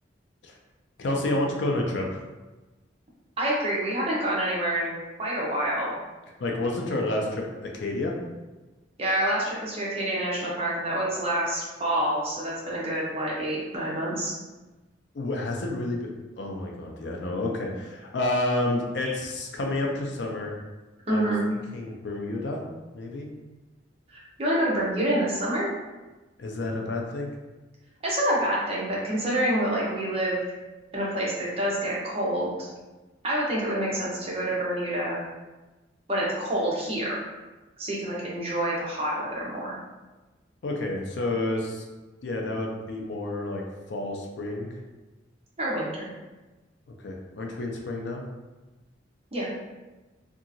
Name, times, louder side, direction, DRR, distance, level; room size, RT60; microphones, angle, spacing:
voice 1, 1.0-2.2 6.4-8.2 15.1-16.1 16.4-20.6 21.1-21.3 21.7-22.6 22.9-23.3 26.4-27.3 40.6-41.8 42.2-43.6 43.9-44.7 47.0-48.2, left 2 dB, 65° left, 1 dB, 0.4 m, -29 dB
voice 2, 3.4-4.9 5.2-6.0 9.0-14.3 19.0-19.1 21.1-21.4 24.1-25.7 28.0-30.5 30.9-32.7 33.2-35.2 36.1-37.2 37.8-39.8 45.6-46.1 49.3-49.5, right 1 dB, 30° right, -5 dB, 0.7 m, -27 dB
2.8 x 2.4 x 2.5 m, 1.1 s
head